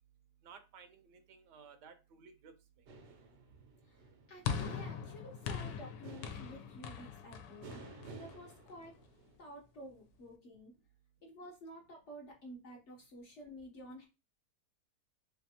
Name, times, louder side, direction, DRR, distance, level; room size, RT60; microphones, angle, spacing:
voice 1, 0.4-2.9, right 6 dB, 75° right, 8 dB, 1.2 m, -57 dB
sound 1, 2.9-9.4, right 3 dB, 60° right, 0.7 m, -54 dB
voice 2, 3.8-9.0 9.4-10.7 11.2-14.1, equal, 55° left, 0 dB, 0.8 m, -52 dB
sound 2, 4.5-8.9, left 7 dB, 85° left, 1.2 m, -41 dB
3.4 x 3.3 x 2.7 m, 0.28 s
omnidirectional pair, 1.8 m